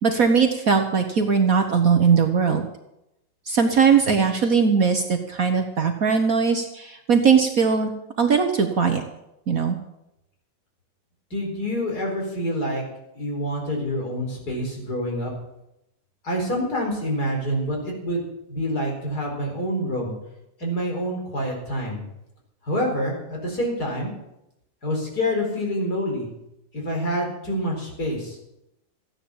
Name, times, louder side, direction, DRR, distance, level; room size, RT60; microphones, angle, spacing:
voice 1, 0.0-2.7 3.5-7.9 8.2-9.0 9.5-9.8, right 6 dB, 50° right, 5 dB, 1.4 m, -20 dB
voice 2, 11.3-12.8 13.1-15.3 16.2-20.1 20.6-22.0 22.6-24.1 24.8-26.3 26.7-28.4, equal, 50° left, 0 dB, 5.0 m, -27 dB
15.0 x 10.0 x 7.2 m, 0.86 s
omnidirectional pair, 2.1 m